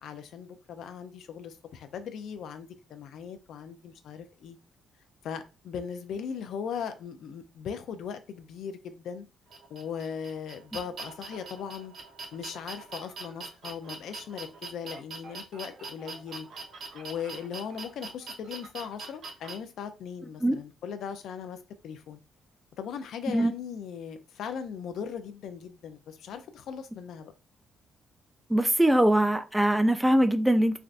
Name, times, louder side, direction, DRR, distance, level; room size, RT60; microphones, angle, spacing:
voice 1, 0.0-4.6 5.2-9.3 9.7-11.9 12.3-16.5 16.9-21.6 21.8-22.2 22.8-27.3, left 7 dB, 75° left, 0.3 m, -38 dB
sound 1, 9.5-19.5, right 4 dB, 65° right, 0.8 m, -42 dB
voice 2, 28.5-30.8, right 1 dB, 5° right, 0.4 m, -22 dB
3.3 x 2.5 x 2.4 m
cardioid pair, 90°, 0 cm